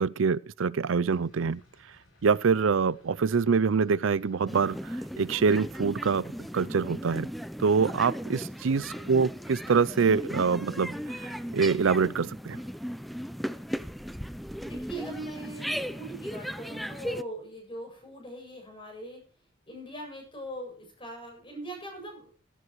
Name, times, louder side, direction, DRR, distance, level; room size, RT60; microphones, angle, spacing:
voice 1, 0.0-1.6 2.2-7.3 7.6-12.6, right 5 dB, 80° right, 0.5 m, -25 dB
sound 1, 1.1-5.5, left 1 dB, 85° left, 7.3 m, -61 dB
sound 2, 4.5-17.2, equal, ahead, 0.5 m, -37 dB
voice 2, 8.9-9.4 14.6-19.2 19.7-22.3, right 1 dB, 25° left, 7.7 m, -41 dB
16.0 x 14.5 x 3.1 m
head